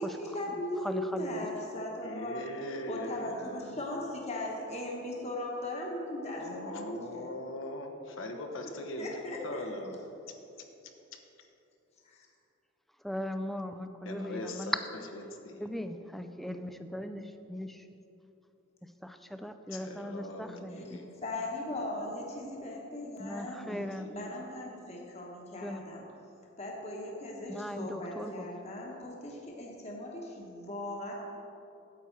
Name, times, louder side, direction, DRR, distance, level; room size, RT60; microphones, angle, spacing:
voice 1, 0.0-2.4 2.9-7.3 9.0-9.6 12.0-12.3 20.7-23.6 24.1-26.0 26.6-31.1, left 1 dB, 35° left, -2 dB, 1.1 m, -38 dB
voice 2, 0.8-1.5 13.0-14.8 15.6-17.9 19.0-21.0 23.2-24.1 25.6-25.8 27.5-28.5, equal, ahead, 8 dB, 0.3 m, -38 dB
voice 3, 2.0-3.8 6.4-9.1 9.4-10.0 14.0-14.8 15.1-15.7 19.7-21.2 23.6-24.4, left 1 dB, 80° left, 3 dB, 1.0 m, -41 dB
9.2 x 8.3 x 4.5 m, 2.9 s
head